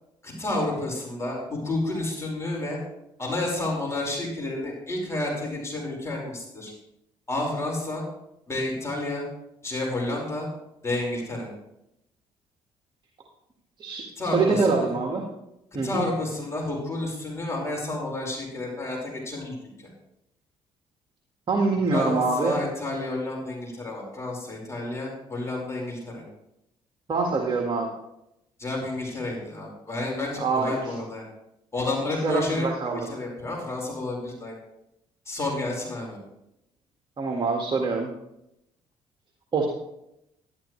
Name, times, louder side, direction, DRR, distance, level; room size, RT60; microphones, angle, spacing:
voice 1, 0.2-2.8 3.2-6.7 7.3-8.0 8.5-9.2 9.6-10.5 10.8-11.5 14.2-14.9 15.8-19.9 21.9-26.2 28.6-31.2 31.7-34.6 35.3-36.2, left 2 dB, 25° left, -2 dB, 5.2 m, -30 dB
voice 2, 14.3-15.3 15.7-16.0 21.5-22.6 27.1-27.9 30.4-30.9 32.2-33.1 37.2-38.1 39.5-39.7, right 4 dB, 40° right, 1 dB, 1.8 m, -24 dB
12.0 x 12.0 x 3.3 m, 0.84 s
supercardioid pair, 65°, 12 cm